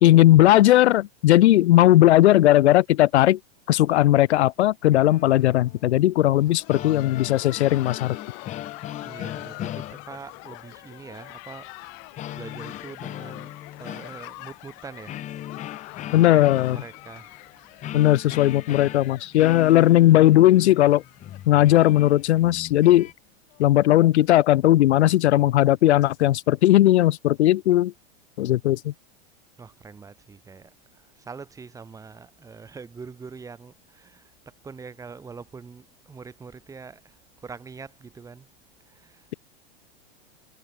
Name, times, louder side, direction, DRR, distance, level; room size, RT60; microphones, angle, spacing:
voice 1, 0.0-3.4 3.7-8.2 16.1-16.8 17.9-21.0 21.5-23.1 23.6-27.9 28.4-28.9, left 14 dB, 75° left, 1.2 m, -17 dB
sound 1, 5.1-6.2 6.5-10.5 12.2-14.7 15.0-23.1, left 12 dB, 20° left, 3.8 m, -38 dB
Laughter, 6.3-21.9 22.2-22.3 22.9-23.0 23.5-23.7 24.8-24.9, left 36 dB, 40° left, 7.9 m, -44 dB
voice 2, 9.0-11.9 12.3-15.2 15.6-18.0 18.7-18.9 29.6-38.5 38.9-39.3, right 5 dB, 10° right, 4.5 m, -44 dB
supercardioid pair, 165°, 33 cm